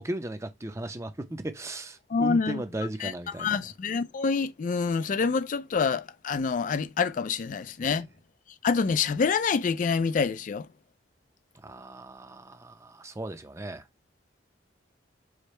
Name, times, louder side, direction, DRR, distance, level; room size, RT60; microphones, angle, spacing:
voice 1, 0.0-3.6 7.8-8.0 11.6-13.8, right 1 dB, 15° right, 0.5 m, -36 dB
voice 2, 2.1-2.6 3.0-3.1 3.4-8.1 8.6-10.7, left 5 dB, 45° left, 0.3 m, -26 dB
4.9 x 2.1 x 4.2 m
head